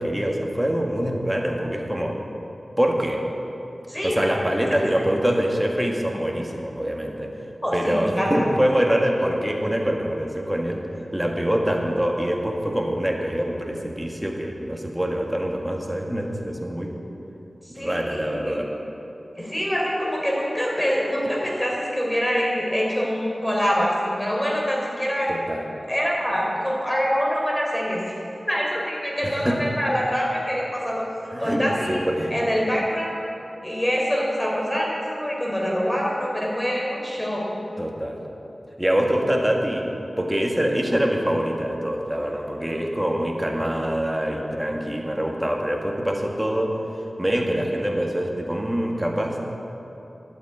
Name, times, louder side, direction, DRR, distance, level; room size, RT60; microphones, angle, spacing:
voice 1, 0.0-2.2 2.8-3.2 4.0-7.3 7.7-10.8 11.1-16.9 17.7-18.7 25.3-25.7 29.2-29.6 31.3-32.4 37.8-38.2 38.8-39.9 40.2-46.8 47.2-49.4, equal, 10° right, 1 dB, 1.9 m, -24 dB
voice 2, 7.6-8.5 17.8-18.6 19.4-25.3 25.9-28.0 28.5-31.0 31.4-32.0 32.3-33.3 33.6-37.4, equal, 15° left, -3 dB, 3.8 m, -25 dB
12.0 x 8.7 x 8.7 m, 2.9 s
wide cardioid pair, 55°, 0 cm